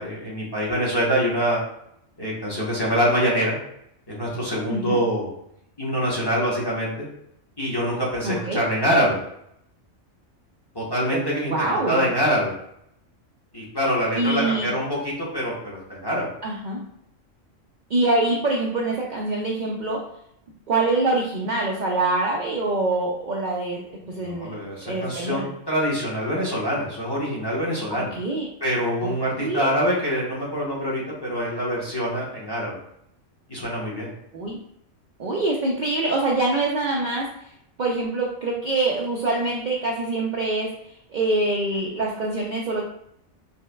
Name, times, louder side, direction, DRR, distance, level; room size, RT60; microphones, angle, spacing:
voice 1, 0.0-1.6 2.2-3.5 4.1-5.3 5.8-7.1 7.6-9.2 10.7-12.5 13.5-16.3 24.2-28.1 28.6-32.8 33.5-34.1, equal, 25° left, -5 dB, 0.6 m, -25 dB
voice 2, 8.2-8.6 11.1-12.1 14.2-14.7 16.4-16.8 17.9-20.0 20.7-24.5 24.9-25.5 27.9-28.5 29.0-29.1 29.4-29.7 34.3-34.6 35.2-37.3 37.8-42.8, right 2 dB, 80° right, -2 dB, 0.4 m, -25 dB
5.1 x 2.1 x 2.2 m, 0.75 s
omnidirectional pair, 1.3 m